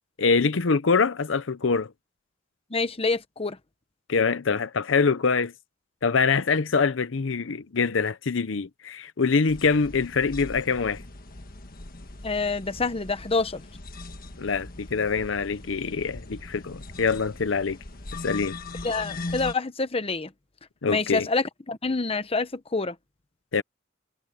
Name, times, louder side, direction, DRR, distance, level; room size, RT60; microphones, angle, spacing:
voice 1, 0.2-1.9 4.1-5.5 6.0-11.0 14.4-17.8 18.2-18.6 20.8-21.3 23.5-23.6, left 5 dB, 70° left, 0.7 m, -24 dB
voice 2, 2.7-3.6 12.2-13.6 18.8-20.3 20.9-22.9, left 3 dB, 30° left, 1.0 m, -27 dB
sound 1, 9.5-19.5, left 2 dB, 50° left, 1.6 m, -40 dB
head